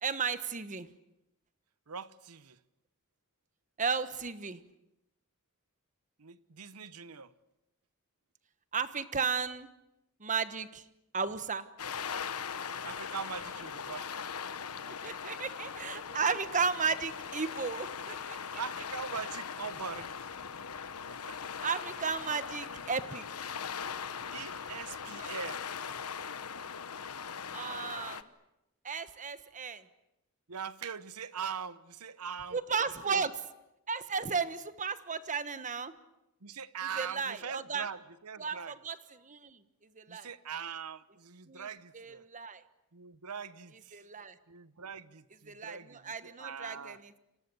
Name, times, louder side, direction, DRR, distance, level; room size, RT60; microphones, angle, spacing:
voice 1, 0.0-0.9 3.8-4.6 8.7-9.7 10.2-10.9 11.1-11.7 14.9-18.4 21.6-23.5 25.0-25.3 27.5-28.3 28.8-29.9 32.5-33.3 33.9-35.9 37.0-37.9 38.4-39.6 39.9-40.3 41.5-41.7 41.9-42.6 43.9-44.4 45.5-47.2, right 5 dB, 35° right, 1.3 m, -34 dB
voice 2, 1.9-2.6 6.2-7.3 12.8-14.2 16.1-16.2 18.6-20.3 21.1-21.4 24.3-25.6 30.5-32.6 33.1-33.2 36.4-38.7 40.1-42.2 42.9-44.0 44.5-47.0, right 6 dB, 90° right, 1.1 m, -42 dB
sound 1, 11.8-28.2, left 6 dB, 85° left, 1.1 m, -40 dB
30.0 x 25.5 x 7.0 m
head